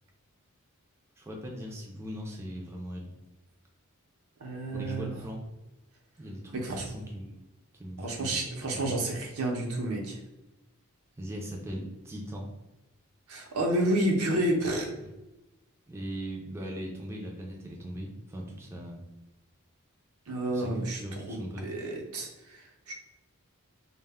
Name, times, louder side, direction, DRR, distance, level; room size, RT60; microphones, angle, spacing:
voice 1, 1.2-3.1 4.7-5.4 6.2-7.4 7.8-8.4 8.7-8.9 11.2-12.5 15.0-15.1 15.9-19.0 20.5-21.7, equal, 10° right, -1 dB, 0.3 m, -39 dB
voice 2, 4.4-5.1 6.5-6.8 8.0-10.2 13.3-14.9 20.3-21.4 21.6-22.9, right 1 dB, 75° right, 1 dB, 0.6 m, -30 dB
2.1 x 2.0 x 3.4 m, 0.99 s
head